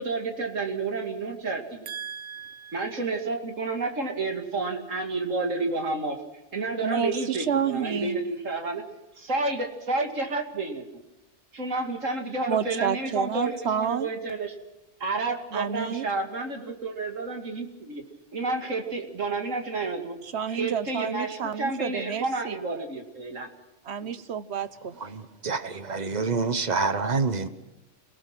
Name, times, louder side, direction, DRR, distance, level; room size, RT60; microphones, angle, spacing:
voice 1, 0.0-1.9 2.7-6.2 6.5-8.9 9.2-10.8 11.5-14.5 15.0-18.0 18.3-20.2 20.5-23.5 24.0-24.1, right 3 dB, 75° right, 2.9 m, -30 dB
voice 2, 1.9-2.9 6.8-8.2 12.5-14.1 15.5-16.1 20.2-22.6 23.8-25.0, right 7 dB, 60° right, 1.2 m, -30 dB
voice 3, 25.0-27.5, right 4 dB, 35° right, 1.3 m, -27 dB
28.5 x 18.0 x 6.1 m
omnidirectional pair, 1.3 m